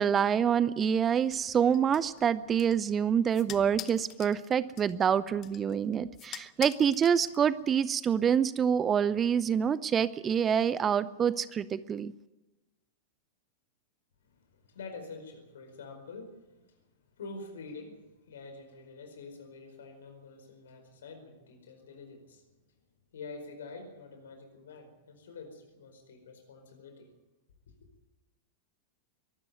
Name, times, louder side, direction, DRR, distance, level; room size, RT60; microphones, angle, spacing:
voice 1, 0.0-12.1, right 8 dB, 25° right, 18 dB, 0.6 m, -26 dB
sound 1, 1.3-7.8, left 13 dB, 35° left, 0.9 m, -47 dB
voice 2, 14.2-22.5 23.1-27.1, left 3 dB, 65° left, 6 dB, 4.8 m, -47 dB
23.5 x 12.5 x 9.3 m, 1.1 s
figure-of-eight pair, 90°, 0 cm